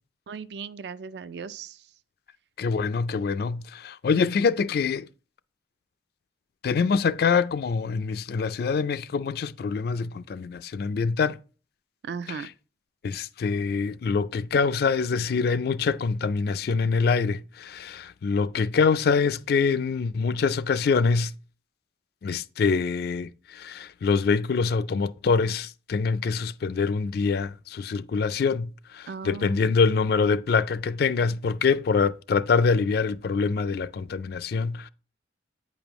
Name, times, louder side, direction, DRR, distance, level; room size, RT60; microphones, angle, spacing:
voice 1, 0.3-1.9 12.0-12.5 29.1-29.8, right 5 dB, 60° right, 0.4 m, -37 dB
voice 2, 2.6-5.1 6.6-11.4 13.0-21.3 22.2-34.9, left 5 dB, 55° left, 0.3 m, -25 dB
8.8 x 5.2 x 3.0 m
head